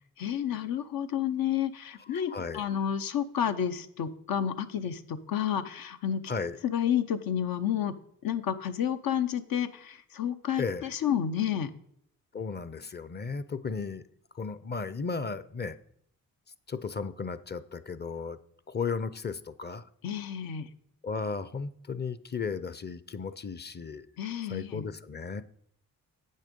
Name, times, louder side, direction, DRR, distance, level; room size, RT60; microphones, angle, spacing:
voice 1, 0.2-6.2 6.6-8.0 8.2-11.7 20.0-20.7 24.2-24.8, left 9 dB, 75° left, 9 dB, 0.8 m, -30 dB
voice 2, 2.0-2.7 6.3-6.6 10.6-10.9 12.3-14.0 14.3-15.8 16.7-18.4 18.7-19.9 21.0-24.1 24.4-25.4, left 5 dB, 30° left, 14 dB, 0.6 m, -35 dB
8.3 x 6.5 x 5.2 m, 0.69 s
cardioid pair, 70°, 35 cm